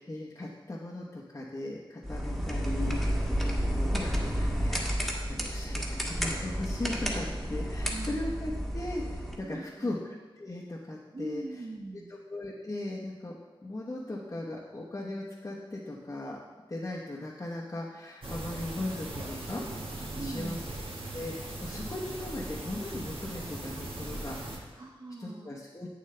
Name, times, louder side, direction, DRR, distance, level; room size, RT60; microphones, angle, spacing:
voice 1, 0.0-5.0 5.3-10.0 10.4-11.4 12.1-16.4 16.7-19.6 20.2-20.6 21.1-24.7 25.2-26.0, left 2 dB, 35° left, -6 dB, 1.1 m, -38 dB
sound 1, 2.0-9.4, equal, ahead, 1.5 m, -31 dB
voice 2, 7.9-8.6 9.4-9.9 11.1-12.1 20.1-20.6 24.7-25.5, right 2 dB, 50° right, 0 dB, 0.8 m, -41 dB
sound 2, 18.2-24.6, right 2 dB, 65° right, 1.6 m, -39 dB
8.2 x 7.7 x 3.3 m, 1.3 s
cardioid pair, 50°, 10 cm